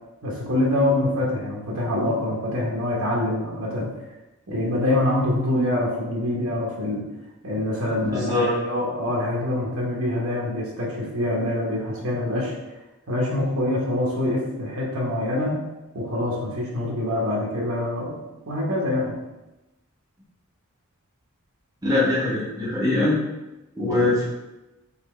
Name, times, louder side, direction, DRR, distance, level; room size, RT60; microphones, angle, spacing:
voice 1, 0.2-3.9 4.5-7.0 7.4-12.5 13.1-15.6 15.9-18.2 18.5-19.2, left 1 dB, 65° right, -3 dB, 0.9 m, -25 dB
voice 2, 8.1-8.5 21.8-23.2 23.8-24.2, left 2 dB, 15° right, -9 dB, 1.0 m, -22 dB
4.2 x 3.4 x 3.1 m, 1.0 s
head